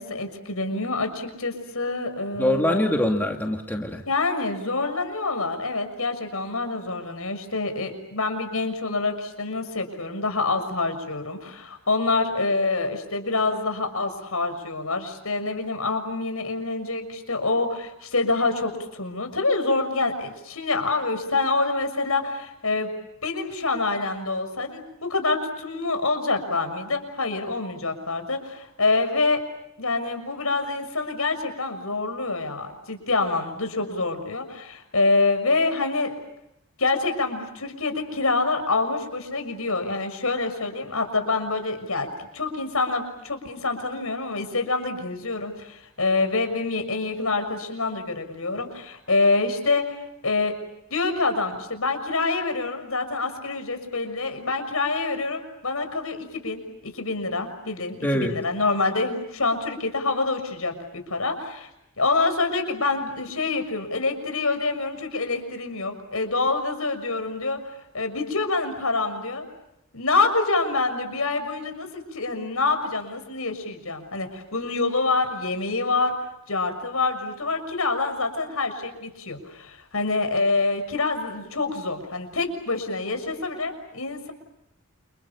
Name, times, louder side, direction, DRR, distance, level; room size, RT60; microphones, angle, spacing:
voice 1, 0.0-3.0 4.1-22.9 23.2-29.4 29.8-36.1 36.8-50.5 50.9-61.7 62.0-67.6 67.9-69.5 69.9-76.1 76.5-84.3, left 3 dB, 75° left, 7 dB, 6.3 m, -26 dB
voice 2, 2.4-4.0 58.0-58.3, left 1 dB, 10° left, 2 dB, 2.4 m, -23 dB
29.5 x 28.5 x 7.2 m, 0.83 s
head